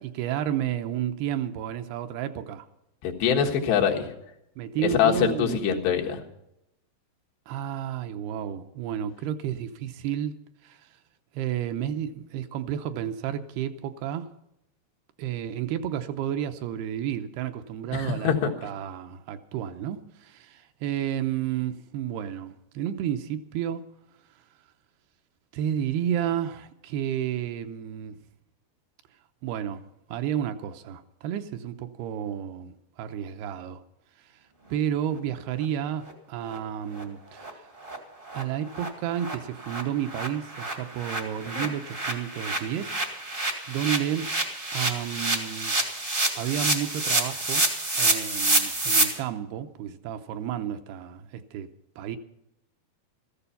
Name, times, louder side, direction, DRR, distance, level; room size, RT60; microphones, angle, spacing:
voice 1, 0.0-2.6 4.6-5.8 7.5-10.4 10.6-10.8 11.3-14.3 15.2-18.3 18.6-23.9 25.5-28.2 29.4-29.8 30.1-33.8 34.7-37.5 38.3-43.0 43.3-44.3 44.7-45.7 46.3-47.7 48.0-51.7 52.0-52.2, right 10 dB, 80° right, 2.7 m, -31 dB
voice 2, 3.0-4.1 5.0-6.2 17.9-18.5 41.6-41.7, left 8 dB, 85° left, 3.7 m, -24 dB
sound 1, 36.1-36.2 36.5-36.6 36.9-37.0 37.4-37.5 37.8-38.0 38.3-38.4 38.7-38.9 39.1-49.0, right 2 dB, 45° right, 0.7 m, -28 dB
14.5 x 14.0 x 5.6 m
omnidirectional pair, 4.7 m